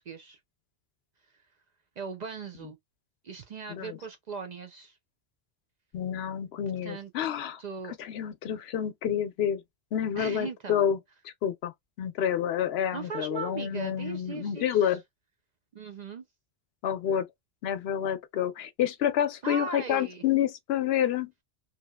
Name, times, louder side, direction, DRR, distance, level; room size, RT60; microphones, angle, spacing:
voice 1, 0.1-0.4 2.0-2.8 3.2-5.0 6.8-7.1 7.6-7.9 10.2-10.9 12.9-15.0 15.7-16.3 19.4-20.2, right 5 dB, 55° right, 0.5 m, -39 dB
voice 2, 5.9-7.6 8.0-9.6 9.9-11.0 11.2-11.7 12.0-15.0 16.8-17.3 17.6-21.3, left 9 dB, 75° left, 0.8 m, -28 dB
2.7 x 2.7 x 2.2 m
omnidirectional pair, 1.1 m